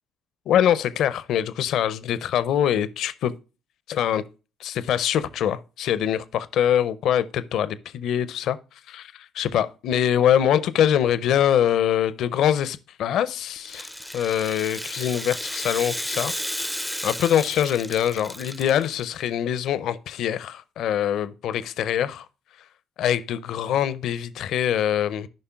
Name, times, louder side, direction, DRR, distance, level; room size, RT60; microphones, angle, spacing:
voice 1, 0.5-3.3 3.9-4.2 4.6-8.6 8.9-16.3 17.0-22.3 23.0-25.3, left 10 dB, 65° left, 0.5 m, -23 dB
Rattle (instrument), 13.6-19.0, equal, ahead, 0.4 m, -33 dB
11.5 x 5.3 x 2.3 m
hypercardioid pair, 50°, 0 cm